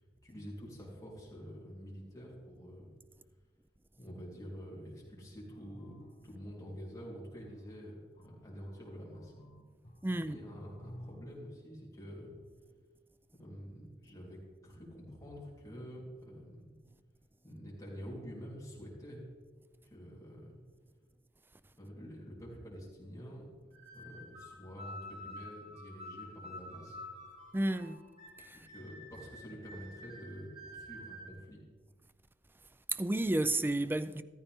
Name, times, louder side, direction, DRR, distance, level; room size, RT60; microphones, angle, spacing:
voice 1, 0.2-2.9 4.0-6.0 6.2-9.3 10.3-12.3 13.4-16.8 17.4-19.2 19.8-20.6 21.8-27.0 28.7-31.6, equal, 20° left, 3.5 m, -48 dB
sound 1, 5.5-11.3, equal, 35° left, 1.7 m, -55 dB
voice 2, 10.0-10.4 27.5-28.0 28.4-28.7 32.9-34.2, right 1 dB, 10° right, 0.4 m, -32 dB
sound 2, 23.7-31.3, left 1 dB, 35° right, 2.8 m, -49 dB
14.0 x 13.5 x 3.6 m
head